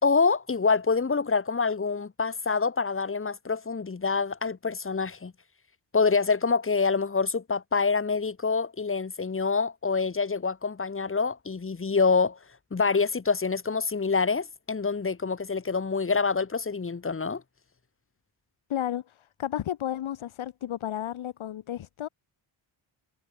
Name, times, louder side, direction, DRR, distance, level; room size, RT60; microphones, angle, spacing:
voice 1, 0.0-5.3 5.9-12.4 12.7-17.4, left 4 dB, 25° left, 5.6 m, -26 dB
voice 2, 18.7-22.1, left 11 dB, 75° left, 4.3 m, -32 dB
wide cardioid pair, 165°, 48 cm